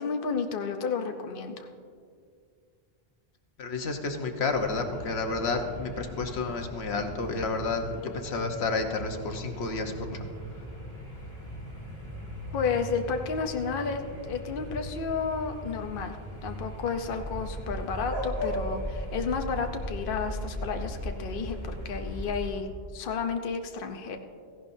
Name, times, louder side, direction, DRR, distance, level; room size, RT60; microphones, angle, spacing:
voice 1, 0.0-1.7 12.5-16.2 16.4-24.2, left 5 dB, 60° left, 5 dB, 0.9 m, -32 dB
voice 2, 3.6-10.3, left 3 dB, 85° left, 4 dB, 1.3 m, -30 dB
sound 1, 4.5-22.6, equal, 15° left, 2.6 m, -38 dB
16.5 x 15.5 x 2.7 m, 2.2 s
omnidirectional pair, 1.0 m